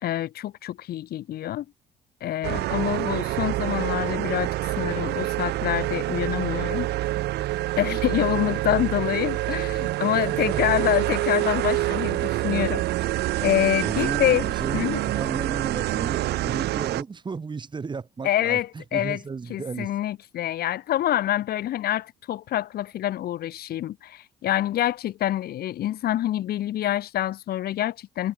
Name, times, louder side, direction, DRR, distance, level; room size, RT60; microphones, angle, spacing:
voice 1, 0.0-1.6 2.2-6.9 7.8-12.8 13.4-15.0 18.2-19.2 19.5-28.3, left 13 dB, 65° left, 3.0 m, -26 dB
sound 1, 2.4-17.0, right 16 dB, 75° right, 1.6 m, -26 dB
voice 2, 10.3-10.8 13.8-19.9, right 5 dB, 25° right, 3.6 m, -34 dB
cardioid pair, 110°, 17 cm